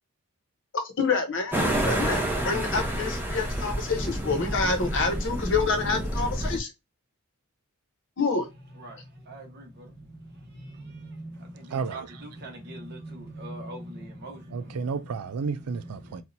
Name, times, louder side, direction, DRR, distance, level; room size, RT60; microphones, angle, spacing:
voice 1, 1.0-6.7 8.2-8.5, left 4 dB, 55° left, 0.9 m, -27 dB
sound 1, 1.5-6.6, right 1 dB, 10° right, 0.8 m, -29 dB
voice 2, 8.8-14.9 16.1-16.2, right 1 dB, 50° right, 1.2 m, -42 dB
voice 3, 11.7-12.2 14.5-16.2, right 5 dB, 85° right, 0.4 m, -32 dB
4.2 x 2.4 x 2.6 m
head